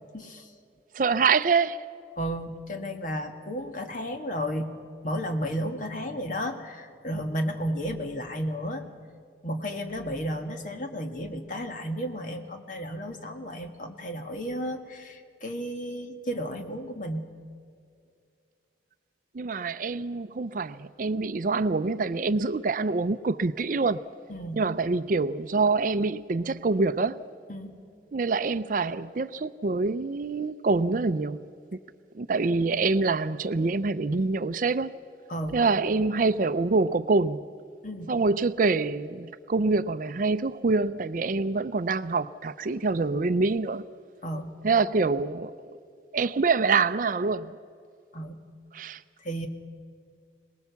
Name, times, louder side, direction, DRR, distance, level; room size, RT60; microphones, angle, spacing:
voice 1, 0.1-0.5 2.2-4.7 5.0-8.9 9.4-17.3 24.3-24.6 27.5-27.8 35.3-35.6 37.8-38.1 44.2-44.6 48.1-48.4 49.2-49.5, equal, 45° left, 1.6 m, -33 dB
voice 2, 0.9-1.9 19.3-24.0 24.5-27.2 28.1-31.4 32.1-34.9 35.5-37.5 38.1-43.8 44.6-45.5 46.1-47.6 48.7-49.0, right 4 dB, 50° right, 0.5 m, -25 dB
23.0 x 19.5 x 7.0 m
head